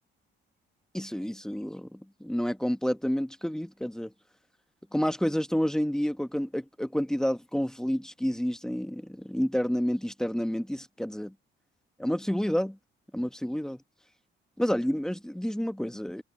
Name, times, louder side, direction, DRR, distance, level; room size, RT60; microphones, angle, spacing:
voice 1, 0.9-4.1 4.9-11.3 12.0-12.8 13.1-13.8 14.6-16.2, equal, 5° left, 1.3 m, -29 dB
cardioid pair, 90°, 20 cm